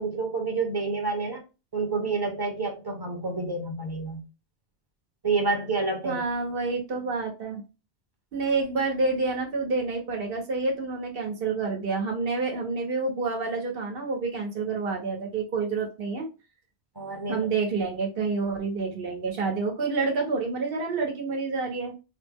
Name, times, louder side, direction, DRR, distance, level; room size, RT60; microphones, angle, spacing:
voice 1, 0.0-1.4 1.7-4.2 5.2-6.2 16.9-17.5, right 3 dB, 25° right, 2 dB, 0.9 m, -28 dB
voice 2, 6.0-7.6 8.3-16.3 17.3-21.9, right 4 dB, 60° right, 1 dB, 1.2 m, -28 dB
4.8 x 2.1 x 3.5 m, 0.30 s
omnidirectional pair, 1.1 m